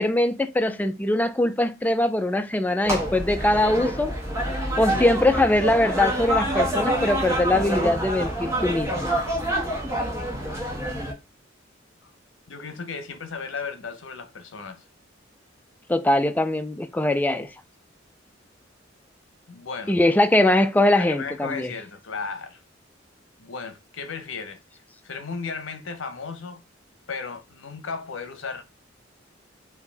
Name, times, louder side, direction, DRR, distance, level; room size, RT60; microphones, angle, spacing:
voice 1, 0.0-4.1 4.8-9.1 15.9-17.5 19.9-21.7, left 1 dB, 10° left, 0.3 m, -22 dB
sound 1, 2.8-11.1, right 1 dB, 15° right, 1.2 m, -27 dB
voice 2, 12.5-14.8 19.5-20.0 21.0-22.6 23.4-24.6 25.0-26.6 27.1-28.6, left 5 dB, 85° left, 0.8 m, -35 dB
4.6 x 2.6 x 3.3 m
head